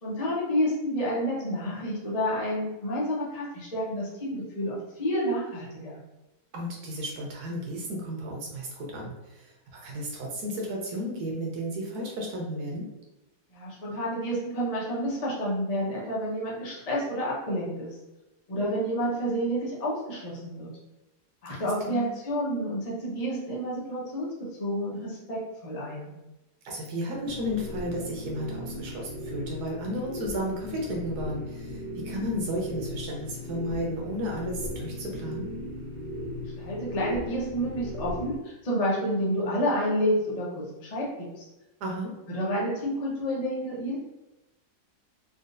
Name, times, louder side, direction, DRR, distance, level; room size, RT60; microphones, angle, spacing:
voice 1, 0.0-6.0 13.5-17.9 18.5-20.7 21.4-24.3 24.6-26.1 36.6-41.5 42.3-44.0, equal, 40° left, -5 dB, 0.5 m, -29 dB
voice 2, 6.5-12.9 21.5-22.1 26.6-35.5 41.8-42.1, equal, 75° right, -1 dB, 1.3 m, -33 dB
sound 1, 27.2-38.4, left 1 dB, 80° left, 1.3 m, -37 dB
3.7 x 2.4 x 2.5 m, 0.98 s
omnidirectional pair, 1.7 m